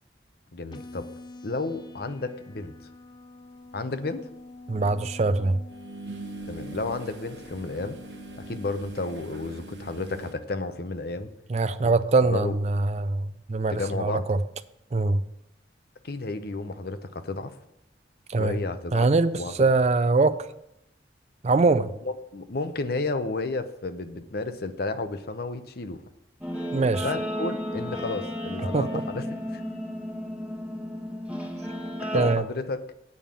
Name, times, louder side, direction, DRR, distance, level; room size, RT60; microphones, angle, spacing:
voice 1, 0.5-1.1 1.4-2.7 3.7-4.3 6.5-8.0 8.4-11.3 11.8-11.9 12.3-12.6 13.7-14.3 16.0-17.5 18.4-19.1 19.4-19.5 22.3-26.0 27.0-29.6 32.1-32.8, left 3 dB, 60° left, 10 dB, 0.7 m, -32 dB
sound 1, 0.7-8.7, left 2 dB, 25° left, 0.5 m, -46 dB
sound 2, 3.8-3.9 5.7-10.3, right 2 dB, 90° right, 1.1 m, -42 dB
voice 2, 4.7-5.6 11.5-14.4 14.9-15.2 18.3-18.6 18.9-20.3 21.4-21.9 26.7-27.1 28.7-29.0 32.1-32.4, right 3 dB, 40° right, 13 dB, 0.4 m, -23 dB
Guitar, 26.4-32.4, equal, 10° right, 1.3 m, -33 dB
8.6 x 5.4 x 7.4 m, 0.80 s
head